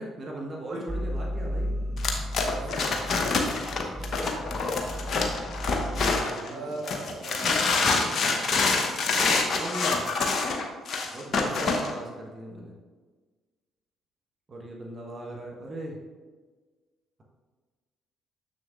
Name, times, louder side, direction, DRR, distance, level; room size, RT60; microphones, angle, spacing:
voice 1, 0.0-1.7 5.9-6.7 9.6-10.0 11.1-12.7 14.5-16.0, right 1 dB, 35° right, -1 dB, 1.0 m, -38 dB
sound 1, 0.9-6.3, equal, 5° right, 0.3 m, -34 dB
sound 2, 2.0-6.5 6.9-11.9, left 4 dB, 50° left, 0.8 m, -26 dB
voice 2, 2.5-3.0 6.5-8.4, right 2 dB, 65° right, -2 dB, 1.2 m, -40 dB
6.9 x 6.4 x 2.4 m, 1.4 s
figure-of-eight pair, 45°, 0 cm